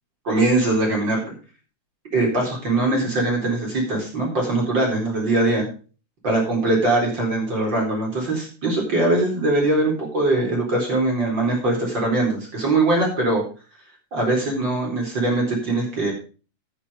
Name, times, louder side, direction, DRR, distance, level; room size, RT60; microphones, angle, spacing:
voice 1, 0.2-1.2 2.1-5.6 6.2-13.4 14.1-16.1, right 2 dB, 35° right, -1 dB, 4.7 m, -21 dB
10.0 x 8.9 x 5.0 m, 0.37 s
omnidirectional pair, 3.7 m